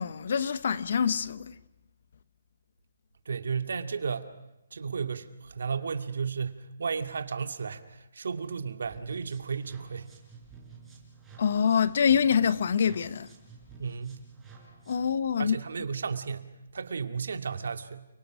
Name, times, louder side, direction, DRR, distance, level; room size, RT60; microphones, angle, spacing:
voice 1, 0.0-1.5 11.4-13.3 14.9-15.6, left 7 dB, 55° left, 1.1 m, -25 dB
voice 2, 3.3-4.3 4.7-10.1 13.8-14.2 15.4-18.1, right 5 dB, 70° right, 2.4 m, -34 dB
sound 1, 8.8-15.2, right 5 dB, 5° right, 5.0 m, -52 dB
29.5 x 24.5 x 6.4 m
hypercardioid pair, 165°, 0 cm